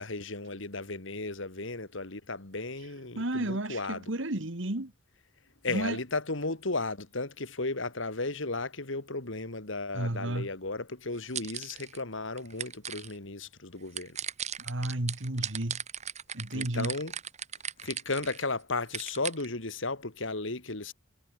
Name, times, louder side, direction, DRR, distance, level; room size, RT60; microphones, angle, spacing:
voice 1, 0.0-4.0 5.6-14.2 16.5-17.1 17.8-20.9, left 3 dB, 65° left, 2.3 m, -35 dB
voice 2, 3.2-4.9 5.7-6.0 9.9-10.5 14.6-15.8 16.3-16.9, right 1 dB, 60° right, 2.1 m, -32 dB
sound 1, 11.1-12.0 12.4-13.1 14.0-18.4 18.9-19.5, right 9 dB, 35° right, 2.7 m, -37 dB
head